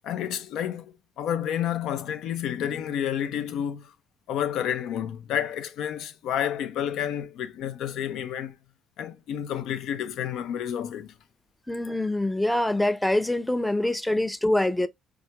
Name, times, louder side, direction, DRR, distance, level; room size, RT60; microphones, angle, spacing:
voice 1, 0.0-3.9 4.3-8.5 9.0-11.1, left 10 dB, 80° left, 0.5 m, -30 dB
voice 2, 11.7-14.9, left 1 dB, 5° left, 0.4 m, -25 dB
3.4 x 2.3 x 2.8 m
cardioid pair, 100°, 0 cm